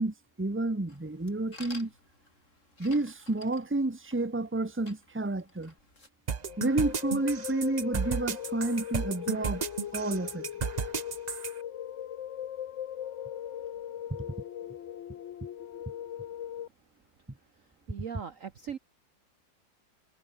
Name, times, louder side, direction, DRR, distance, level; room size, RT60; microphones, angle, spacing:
voice 1, 0.0-1.9 2.8-5.7 6.6-9.6 9.9-10.5, right 2 dB, 5° right, 1.4 m, -30 dB
sound 1, 0.9-6.1, left 2 dB, 40° left, 5.1 m, -53 dB
sound 2, 6.3-11.5, right 6 dB, 70° right, 0.4 m, -33 dB
sound 3, 6.4-16.7, left 10 dB, 60° left, 0.8 m, -39 dB
voice 2, 17.9-18.8, right 7 dB, 50° right, 1.2 m, -39 dB
omnidirectional pair, 2.0 m